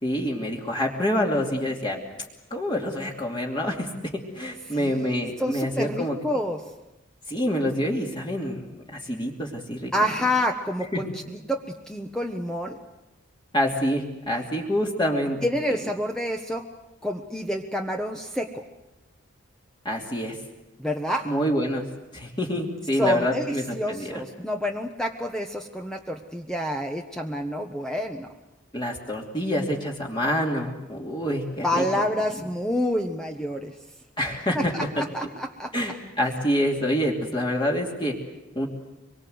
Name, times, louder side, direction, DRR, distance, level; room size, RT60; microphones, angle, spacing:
voice 1, 0.0-2.0 2.5-3.9 4.3-6.2 7.3-9.9 10.9-11.0 13.5-15.4 19.8-20.4 21.2-21.8 22.1-24.2 28.7-31.8 34.2-34.7 35.7-38.1 38.5-38.7, equal, 25° left, -1 dB, 2.8 m, -26 dB
voice 2, 4.8-5.1 5.4-6.6 9.9-12.8 15.4-16.6 17.0-18.6 20.8-21.3 23.0-28.3 31.6-33.7 34.5-35.7, equal, 5° left, 3 dB, 1.2 m, -28 dB
25.0 x 23.5 x 8.0 m, 0.98 s
head